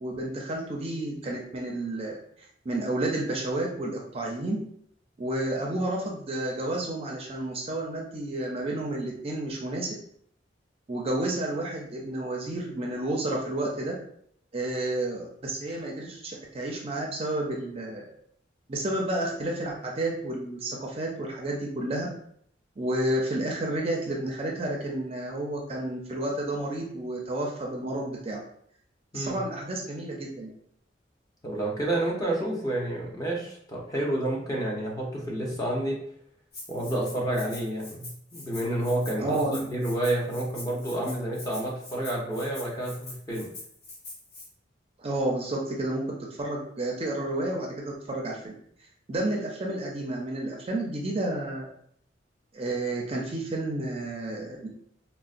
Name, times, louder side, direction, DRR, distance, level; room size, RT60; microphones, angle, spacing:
voice 1, 0.0-4.6 5.2-10.0 10.9-13.9 14.5-18.0 18.7-22.1 22.8-28.4 29.1-30.5 39.2-39.6 45.0-46.1 46.4-48.5 49.1-51.7 52.5-54.7, right 1 dB, 30° right, -1 dB, 0.4 m, -31 dB
voice 2, 31.4-36.0 36.7-39.4 39.7-43.5, right 1 dB, 20° left, -3 dB, 0.7 m, -29 dB
Rattle (instrument), 36.5-44.5, left 2 dB, 55° left, 0.8 m, -44 dB
3.8 x 2.0 x 2.5 m, 0.67 s
head